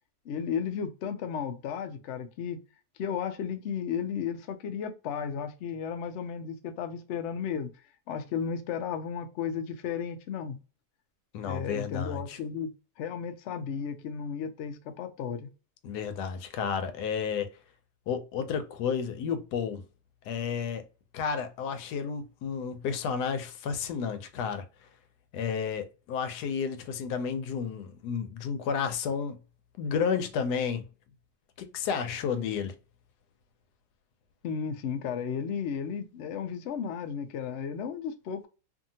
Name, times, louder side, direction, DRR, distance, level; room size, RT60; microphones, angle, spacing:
voice 1, 0.3-2.6 3.0-7.7 8.1-10.6 11.4-15.5 34.4-38.5, left 7 dB, 70° left, 0.7 m, -34 dB
voice 2, 11.3-12.4 15.8-17.5 18.1-19.8 20.3-20.8 21.1-24.6 25.3-29.4 29.8-30.8 31.6-32.7, left 6 dB, 90° left, 1.2 m, -31 dB
2.7 x 2.5 x 2.7 m
omnidirectional pair, 1.7 m